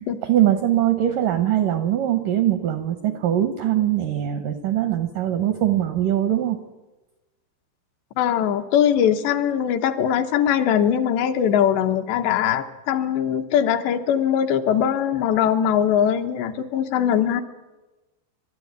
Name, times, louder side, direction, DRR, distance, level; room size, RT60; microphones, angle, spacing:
voice 1, 0.2-6.6, right 11 dB, 80° right, 9 dB, 2.0 m, -22 dB
voice 2, 8.2-17.4, left 9 dB, 75° left, 6 dB, 3.1 m, -21 dB
29.5 x 12.5 x 9.5 m, 1.1 s
omnidirectional pair, 5.2 m